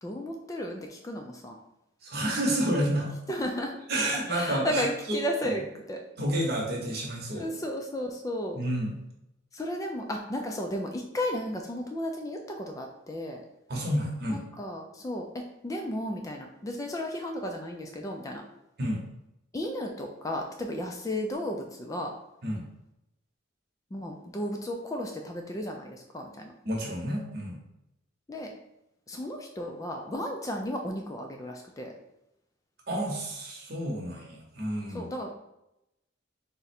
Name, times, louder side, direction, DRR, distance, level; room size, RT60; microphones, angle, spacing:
voice 1, 0.0-1.6 3.3-3.8 4.3-5.6 5.9-6.0 7.3-8.6 9.5-13.4 14.3-18.4 19.5-22.1 23.9-26.5 28.3-28.5 29.1-31.9 34.9-35.4, left 1 dB, 15° left, 2 dB, 0.3 m, -34 dB
voice 2, 2.0-3.1 3.9-5.6 6.2-7.5 8.5-9.0 13.7-14.4 18.8-19.0 22.4-22.6 26.6-27.6 32.9-35.1, right 1 dB, 55° right, -1 dB, 0.9 m, -30 dB
3.7 x 2.1 x 4.2 m, 0.87 s
head